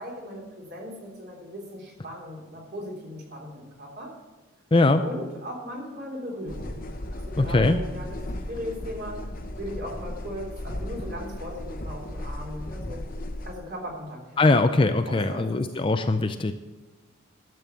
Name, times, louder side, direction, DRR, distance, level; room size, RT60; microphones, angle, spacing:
voice 1, 0.0-4.1 5.0-6.8 7.1-9.2 9.6-13.0 13.5-14.6 15.1-15.6, equal, 45° right, -2 dB, 3.6 m, -38 dB
voice 2, 4.7-5.0 7.4-7.8 14.4-16.5, left 2 dB, 25° left, 8 dB, 0.4 m, -21 dB
sound 1, 6.5-13.5, left 1 dB, 40° left, 0.9 m, -35 dB
12.5 x 7.8 x 7.0 m, 1.2 s
head